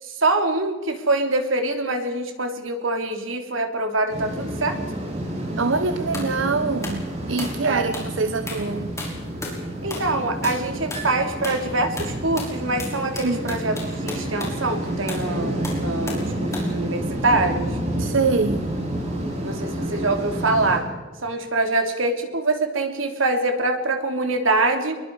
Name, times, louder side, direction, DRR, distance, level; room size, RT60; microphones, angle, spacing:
voice 1, 0.0-4.8 7.6-7.9 9.8-13.7 14.0-17.7 19.4-20.9 21.2-25.0, right 2 dB, 90° right, 3.2 m, -24 dB
sound 1, 4.1-20.8, right 1 dB, 35° right, 6.0 m, -29 dB
voice 2, 5.6-8.9 13.2-13.5 18.0-18.7, right 4 dB, 70° right, 0.9 m, -24 dB
sound 2, 6.1-6.3 6.8-7.0 7.4-7.6 7.9-8.1 8.5-8.7 9.0-9.6 9.9-10.1 10.4-10.6 10.9-11.1 11.4-11.7 12.0-14.6 15.1-15.3 15.6-16.3 16.5-16.7, left 2 dB, 15° left, 6.0 m, -34 dB
25.5 x 22.5 x 4.8 m
head